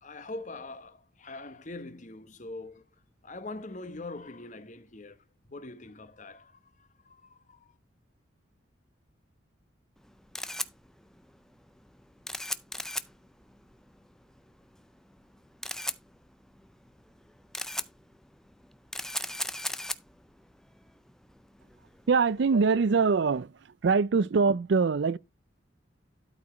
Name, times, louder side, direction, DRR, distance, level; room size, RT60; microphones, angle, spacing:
voice 1, 0.0-2.8 3.2-7.8, left 2 dB, 40° left, 1.0 m, -43 dB
Camera, 10.0-23.3, left 1 dB, 5° left, 0.4 m, -39 dB
voice 2, 22.1-25.2, right 5 dB, 65° right, 0.4 m, -24 dB
12.5 x 4.9 x 4.2 m
head